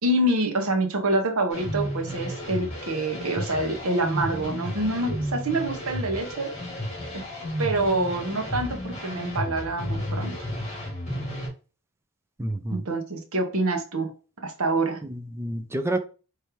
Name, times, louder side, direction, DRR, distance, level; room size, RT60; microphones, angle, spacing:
voice 1, 0.0-6.5 7.6-10.3 12.7-14.1 14.4-15.0, right 2 dB, 75° right, 1.0 m, -26 dB
sound 1, 1.5-11.5, equal, 30° left, 2.1 m, -32 dB
voice 2, 12.4-12.9 15.0-16.0, right 1 dB, 10° right, 0.4 m, -29 dB
4.7 x 3.3 x 3.0 m
head